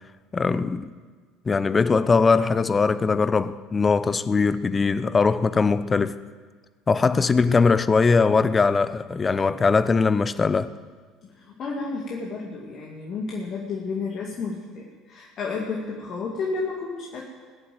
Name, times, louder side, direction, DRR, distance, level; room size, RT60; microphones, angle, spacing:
voice 1, 0.3-0.9 1.5-6.2 6.9-10.7, left 4 dB, 25° left, 0.7 m, -21 dB
voice 2, 11.2-17.2, left 4 dB, 45° left, 2.3 m, -31 dB
20.5 x 7.9 x 7.9 m
figure-of-eight pair, 60°, 0 cm